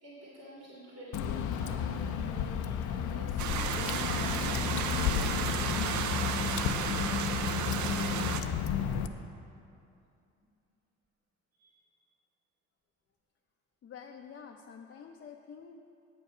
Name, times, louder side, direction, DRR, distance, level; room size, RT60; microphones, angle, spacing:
voice 1, 0.0-5.5 6.1-7.3 7.7-8.3 11.5-11.9, right 1 dB, 55° right, -6 dB, 2.2 m, -48 dB
Water / Drip, 1.1-9.1, left 8 dB, 85° left, 0.5 m, -32 dB
sound 1, 3.4-8.4, right 8 dB, 75° right, 0.6 m, -33 dB
voice 2, 13.8-15.8, left 6 dB, 40° left, 2 dB, 0.5 m, -48 dB
7.8 x 7.3 x 5.5 m, 2.6 s
cardioid pair, 90°, 30 cm